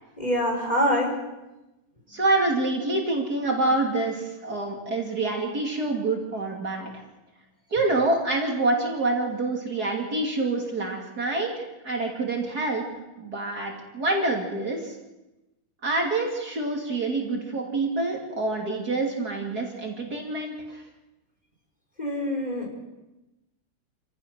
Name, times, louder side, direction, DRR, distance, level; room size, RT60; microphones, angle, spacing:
voice 1, 0.2-1.1 22.0-22.7, equal, 20° left, 0 dB, 4.7 m, -25 dB
voice 2, 2.1-6.9 7.7-12.8 13.2-15.0 15.8-20.8, right 2 dB, 45° right, 0 dB, 3.2 m, -26 dB
27.5 x 16.5 x 6.2 m, 1.0 s
omnidirectional pair, 2.3 m